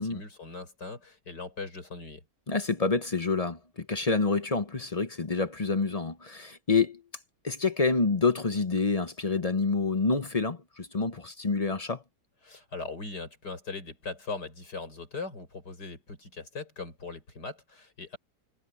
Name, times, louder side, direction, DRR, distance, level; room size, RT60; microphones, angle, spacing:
voice 1, 0.0-2.2 12.4-18.2, left 4 dB, 75° left, 6.1 m, -40 dB
voice 2, 2.5-7.0 7.4-12.0, left 4 dB, 30° left, 0.7 m, -27 dB
omnidirectional pair, 1.8 m